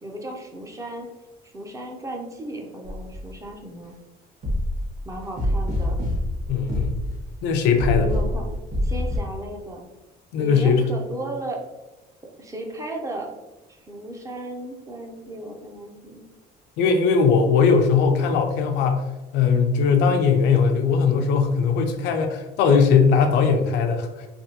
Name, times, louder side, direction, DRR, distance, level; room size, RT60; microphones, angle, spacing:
voice 1, 0.0-1.1 1.5-3.9 5.1-6.0 7.9-8.5 8.8-9.8 10.4-11.6 12.4-13.3 13.9-16.2, right 1 dB, 20° right, 1 dB, 0.5 m, -35 dB
sound 1, 2.8-3.3 4.4-7.4 7.8-9.2, left 1 dB, 45° right, 1.3 m, -26 dB
voice 2, 6.5-7.0 7.4-8.1 10.3-10.8 16.8-19.1 19.3-24.3, left 5 dB, 85° left, 5 dB, 0.5 m, -19 dB
3.4 x 2.3 x 2.7 m, 1.0 s
cardioid pair, 130°, 17 cm